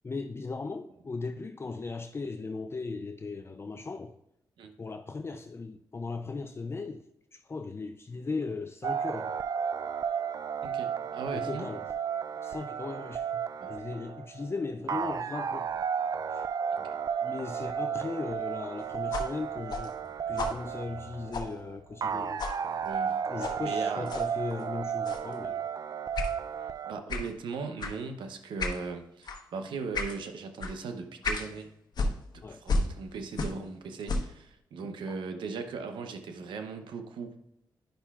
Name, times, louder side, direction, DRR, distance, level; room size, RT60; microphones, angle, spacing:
voice 1, 0.0-4.2 4.8-7.1 7.3-9.3 11.3-11.8 12.4-13.4 13.7-15.7 16.3-16.5 17.2-20.0 20.3-22.5 23.3-25.7 32.4-32.6, left 3 dB, 30° left, 0.5 m, -37 dB
sound 1, 8.8-26.9, right 7 dB, 50° right, 0.3 m, -33 dB
voice 2, 10.6-11.7 13.6-13.7 16.7-16.9 22.8-23.2 23.6-24.1 26.9-31.7 32.3-37.3, right 4 dB, 85° right, 0.8 m, -38 dB
sound 2, 19.1-22.1 22.4-22.6 23.4-23.6 24.1-24.3 25.0-25.3 26.1-26.3 27.1-27.3 27.8-28.0 28.6-28.8 29.2-29.4 29.9-30.2 30.6-30.7 31.2-31.5 31.9-33.7 34.0-34.4, left 2 dB, 60° left, 1.0 m, -33 dB
10.0 x 5.5 x 2.4 m
cardioid pair, 65°, 8 cm